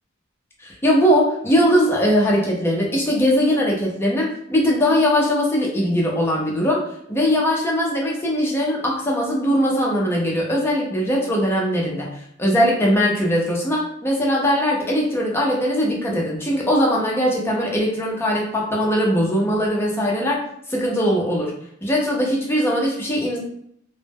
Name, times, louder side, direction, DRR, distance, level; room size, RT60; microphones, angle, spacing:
voice 1, 0.6-6.8 7.1-12.1 12.4-20.4 20.7-21.5 21.8-23.4, equal, 10° left, -2 dB, 0.4 m, -20 dB
2.0 x 2.0 x 3.3 m, 0.71 s
head